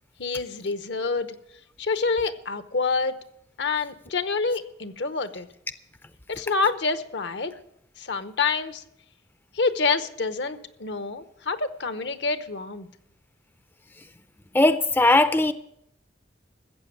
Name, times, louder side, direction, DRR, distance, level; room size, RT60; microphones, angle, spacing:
voice 1, 0.2-1.3 1.8-3.2 3.6-5.5 6.3-7.5 8.0-8.8 9.5-12.9, left 4 dB, 75° left, 0.9 m, -27 dB
voice 2, 14.5-15.5, left 2 dB, 10° left, 0.4 m, -19 dB
14.5 x 7.8 x 7.4 m
head